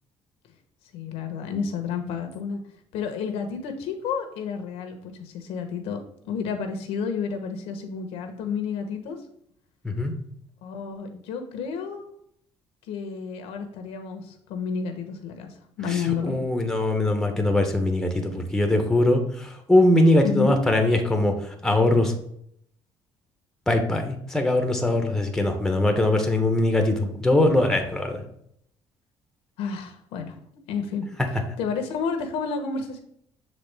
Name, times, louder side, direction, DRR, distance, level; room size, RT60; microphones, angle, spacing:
voice 1, 0.9-2.6 2.9-9.2 10.6-12.1 12.9-16.4 20.2-20.6 29.6-30.4 30.7-31.1 31.6-33.0, left 6 dB, 90° left, 6 dB, 0.9 m, -30 dB
voice 2, 16.2-22.1 23.7-28.2, left 1 dB, 5° left, 4 dB, 0.9 m, -21 dB
6.6 x 4.2 x 3.4 m, 0.70 s
cardioid pair, 120°, 10 cm